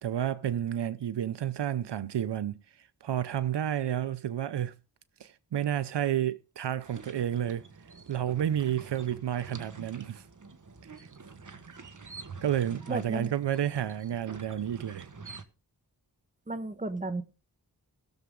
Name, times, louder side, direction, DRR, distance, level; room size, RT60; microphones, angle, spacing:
voice 1, 0.0-4.7 5.2-7.6 8.1-10.3 10.8-11.1 12.4-15.1, right 10 dB, 80° right, 0.6 m, -31 dB
sound 1, 6.8-15.4, right 4 dB, 45° right, 1.4 m, -47 dB
voice 2, 12.9-13.3 16.5-17.2, right 2 dB, 20° right, 1.3 m, -33 dB
19.5 x 7.0 x 3.7 m
wide cardioid pair, 65°, 41 cm